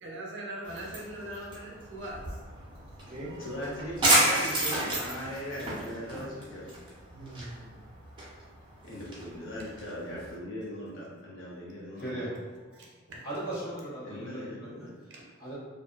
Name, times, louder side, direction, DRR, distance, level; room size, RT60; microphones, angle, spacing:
voice 1, 0.0-2.4 7.1-7.8 12.7-13.2 15.1-15.2, right 1 dB, 65° right, -2 dB, 0.6 m, -41 dB
sound 1, 0.6-10.3, right 1 dB, 25° right, 0.6 m, -32 dB
voice 2, 3.4-6.7 8.8-12.2 14.0-14.9, equal, 75° left, -6 dB, 0.8 m, -39 dB
voice 3, 12.0-12.3 13.2-14.8 15.4-15.5, right 1 dB, 55° left, -9 dB, 1.2 m, -37 dB
2.5 x 2.4 x 2.3 m, 1.4 s
head